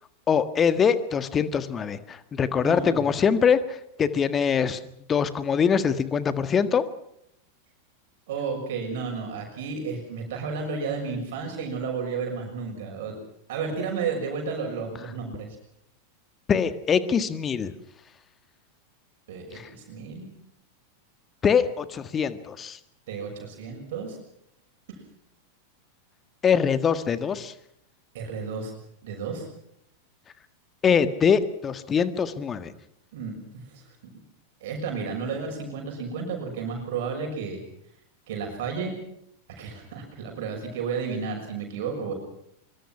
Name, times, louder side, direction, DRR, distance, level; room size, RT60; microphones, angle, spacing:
voice 1, 0.3-4.8 5.1-6.8 16.5-17.7 21.4-22.8 26.4-27.5 30.8-32.7, left 7 dB, 25° left, 12 dB, 1.7 m, -23 dB
voice 2, 2.5-3.1 8.3-13.2 13.5-15.5 19.3-20.3 23.1-24.2 24.9-25.0 28.1-28.7 29.0-29.5 33.1-34.2 34.6-37.6 38.3-38.9 39.5-42.1, right 5 dB, 55° right, 2 dB, 6.6 m, -32 dB
24.0 x 24.0 x 6.0 m, 0.74 s
figure-of-eight pair, 90°, 0 cm